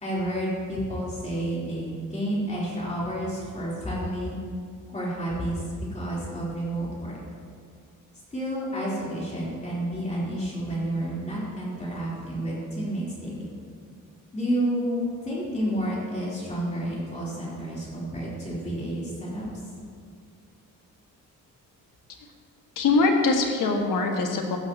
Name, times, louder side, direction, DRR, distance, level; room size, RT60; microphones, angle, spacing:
voice 1, 0.0-4.4 4.9-5.6 5.9-7.2 8.3-13.5 14.3-19.5, right 1 dB, 20° left, -6 dB, 3.3 m, -30 dB
voice 2, 22.8-24.6, left 3 dB, 75° left, 2 dB, 1.5 m, -22 dB
15.5 x 11.5 x 2.8 m, 2.2 s
wide cardioid pair, 170°, 33 cm